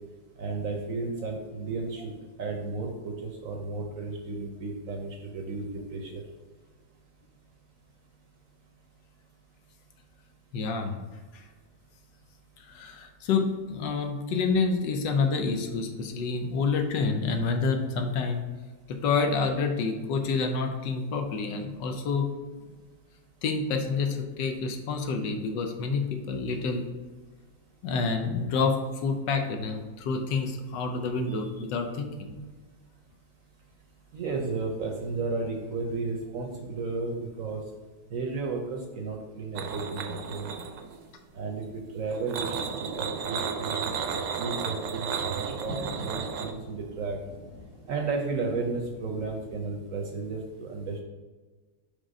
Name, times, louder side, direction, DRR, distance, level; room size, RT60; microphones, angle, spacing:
voice 1, 0.4-2.1 2.4-6.2 34.1-37.6 38.1-40.7 41.3-44.0 44.4-47.2 47.9-51.0, right 3 dB, 60° right, 2 dB, 0.9 m, -33 dB
voice 2, 10.5-11.0 11.3-11.4 12.6-18.4 18.9-22.3 23.4-26.8 27.8-32.3, left 4 dB, 85° left, 5 dB, 1.4 m, -28 dB
sound 1, 39.5-41.0 42.1-46.5, right 6 dB, 80° right, 1.2 m, -33 dB
sound 2, 45.4-49.6, right 1 dB, ahead, 0.7 m, -45 dB
5.2 x 3.6 x 5.2 m, 1.4 s
omnidirectional pair, 1.9 m